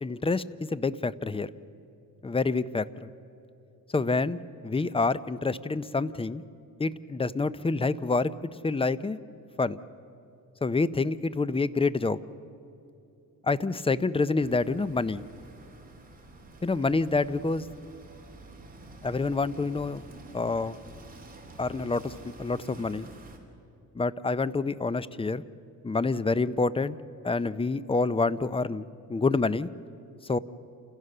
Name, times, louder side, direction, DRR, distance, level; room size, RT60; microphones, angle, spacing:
voice 1, 0.0-1.5 2.2-3.1 3.9-6.4 6.8-8.3 8.6-9.2 9.6-9.8 10.6-12.2 13.4-15.2 16.6-17.7 19.0-20.0 20.3-20.8 21.6-23.1 23.9-25.4 25.8-27.0 27.2-29.7 30.2-30.4, left 3 dB, 15° left, 16 dB, 0.5 m, -27 dB
sound 1, 14.4-23.4, right 2 dB, 25° right, 2.9 m, -48 dB
28.5 x 16.0 x 6.7 m, 2.7 s
cardioid pair, 100°, 35 cm